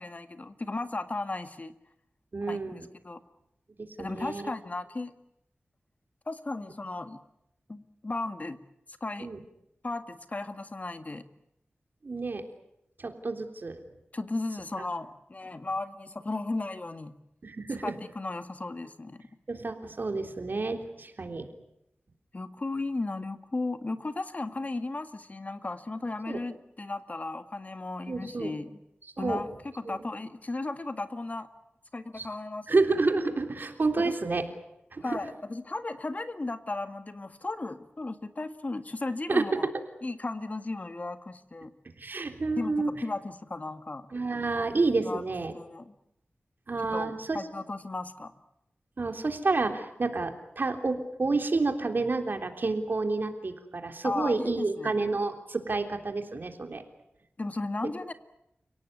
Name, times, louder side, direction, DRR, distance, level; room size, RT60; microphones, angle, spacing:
voice 1, 0.0-1.7 2.5-3.2 4.0-5.1 6.3-7.2 7.7-8.6 8.9-9.3 9.8-11.2 14.1-17.1 17.8-19.3 22.3-28.8 29.2-29.5 29.7-31.5 31.9-32.8 34.0-34.1 35.0-39.7 40.0-41.7 42.6-44.1 45.0-45.2 45.5-45.9 46.9-48.3 54.0-54.9 57.4-58.1, left 2 dB, 40° left, 9 dB, 1.8 m, -35 dB
voice 2, 2.3-2.8 3.8-4.4 9.2-9.4 12.0-12.4 13.0-13.8 17.4-17.9 19.5-21.5 26.3-26.4 28.1-28.5 29.2-29.4 29.9-30.0 32.1-32.3 32.7-34.5 34.9-35.2 39.3-39.7 42.0-42.9 44.1-45.5 46.7-47.4 49.0-56.8, right 3 dB, 60° right, 6 dB, 3.5 m, -29 dB
30.0 x 18.0 x 9.6 m, 0.82 s
wide cardioid pair, 70°, 4 cm